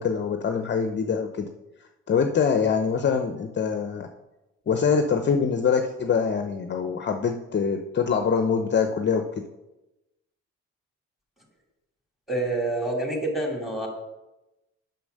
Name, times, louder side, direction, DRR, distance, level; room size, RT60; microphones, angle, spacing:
voice 1, 0.0-1.5 2.1-4.1 4.7-9.4, left 6 dB, 35° left, 6 dB, 0.6 m, -24 dB
voice 2, 12.3-13.9, right 2 dB, ahead, 1 dB, 2.5 m, -27 dB
6.8 x 5.8 x 6.5 m, 1.0 s
cardioid pair, 90°, 30 cm